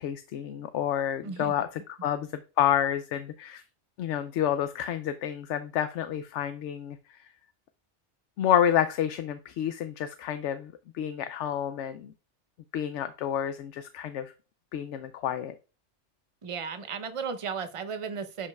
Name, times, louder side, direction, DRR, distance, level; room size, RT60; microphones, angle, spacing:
voice 1, 0.0-1.7 2.0-3.6 4.0-7.0 8.4-12.1 12.7-14.3 14.7-15.5, left 10 dB, 80° left, 0.9 m, -29 dB
voice 2, 1.2-1.5 16.4-18.5, right 6 dB, 35° right, 0.7 m, -35 dB
11.0 x 5.2 x 2.3 m
omnidirectional pair, 1.2 m